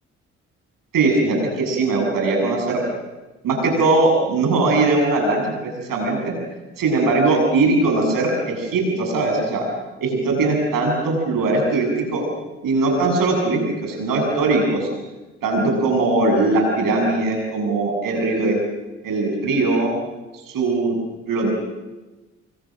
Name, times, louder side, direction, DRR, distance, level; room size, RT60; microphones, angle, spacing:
voice 1, 0.9-2.8 3.4-6.3 6.8-9.6 10.0-12.2 12.6-14.9 15.4-18.6 19.0-19.9 20.5-21.0 21.3-21.5, right 3 dB, 65° right, 2 dB, 7.6 m, -20 dB
26.5 x 24.5 x 6.5 m, 1.2 s
hypercardioid pair, 45°, 36 cm